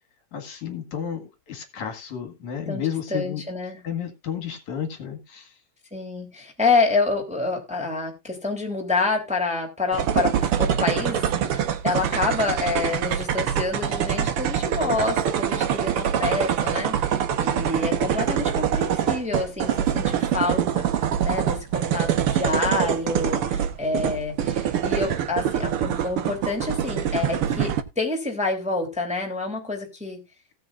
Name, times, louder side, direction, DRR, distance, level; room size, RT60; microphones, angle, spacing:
voice 1, 0.3-3.4 3.8-5.5, left 8 dB, 65° left, 5 dB, 3.1 m, -32 dB
voice 2, 2.7-3.8 5.9-30.2, left 3 dB, ahead, 1 dB, 2.7 m, -27 dB
sound 1, 9.9-27.8, right 9 dB, 60° right, 1.5 m, -24 dB
18.0 x 7.9 x 2.5 m, 0.25 s
omnidirectional pair, 3.8 m